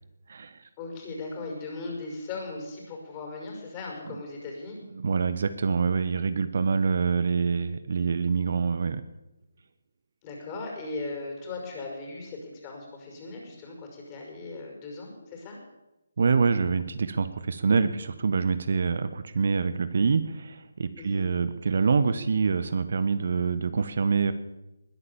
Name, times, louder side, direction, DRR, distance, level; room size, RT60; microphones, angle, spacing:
voice 1, 0.8-4.8 10.2-15.6 21.0-21.3, left 3 dB, 25° left, 0 dB, 5.6 m, -38 dB
voice 2, 4.9-9.0 16.2-24.3, right 5 dB, 55° right, 12 dB, 1.0 m, -25 dB
20.5 x 9.7 x 7.1 m, 0.97 s
figure-of-eight pair, 150°, 0 cm